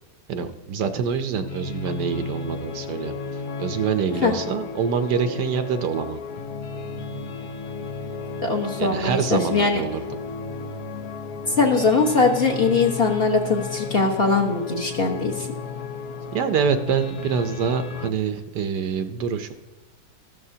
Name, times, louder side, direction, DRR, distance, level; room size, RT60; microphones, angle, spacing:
voice 1, 0.3-3.2 3.6-6.2 8.8-10.0 16.3-19.5, right 6 dB, 70° right, 9 dB, 1.3 m, -25 dB
sound 1, 1.4-18.1, left 5 dB, 70° left, 1.3 m, -34 dB
voice 2, 8.4-9.8 11.5-15.5, left 4 dB, 35° left, 0 dB, 1.4 m, -21 dB
14.0 x 12.5 x 2.8 m, 1.2 s
omnidirectional pair, 1.9 m